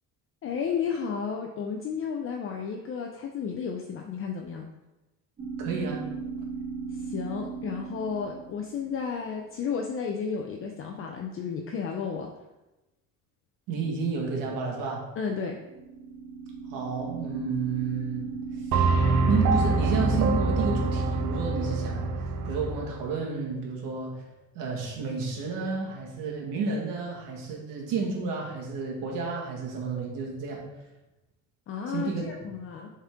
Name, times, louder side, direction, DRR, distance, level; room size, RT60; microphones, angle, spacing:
voice 1, 0.4-4.7 6.9-12.3 15.2-15.6 31.7-32.9, left 6 dB, 40° left, 2 dB, 0.6 m, -32 dB
sound 1, 5.4-9.4 15.5-22.5, right 5 dB, 35° right, 1.8 m, -37 dB
voice 2, 5.6-6.0 13.7-15.0 16.7-18.3 19.2-22.1 22.4-24.2 24.5-30.6 31.9-32.2, right 4 dB, 80° right, -1 dB, 1.9 m, -31 dB
sound 2, 18.7-22.9, right 3 dB, 60° right, 0.8 m, -25 dB
7.0 x 4.3 x 3.7 m, 1.0 s
cardioid pair, 125°, 33 cm